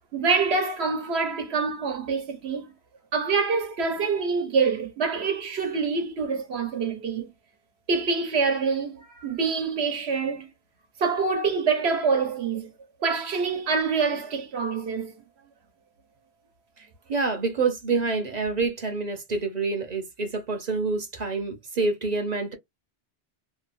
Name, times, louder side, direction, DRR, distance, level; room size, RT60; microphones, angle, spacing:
voice 1, 0.1-2.7 3.1-7.3 7.9-10.5 11.0-12.7 13.0-15.1, right 5 dB, 75° right, 1.2 m, -26 dB
voice 2, 17.1-22.5, right 4 dB, 45° right, 0.8 m, -27 dB
2.9 x 2.1 x 2.5 m
omnidirectional pair, 1.1 m